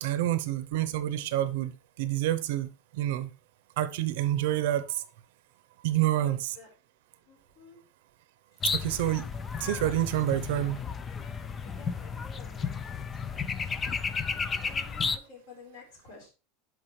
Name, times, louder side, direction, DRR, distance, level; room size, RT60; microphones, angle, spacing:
voice 1, 0.0-3.3 3.8-5.0 5.8-6.5 8.7-9.3 9.6-10.8, right 13 dB, 60° right, 0.7 m, -28 dB
voice 2, 5.9-6.7 7.2-7.8 8.5-8.6 10.3-10.4 11.6-13.4 14.6-16.3, left 4 dB, 50° left, 4.4 m, -51 dB
sound 1, 8.6-15.2, left 5 dB, 15° left, 0.4 m, -33 dB
11.5 x 4.8 x 3.2 m
supercardioid pair, 180°, 0 cm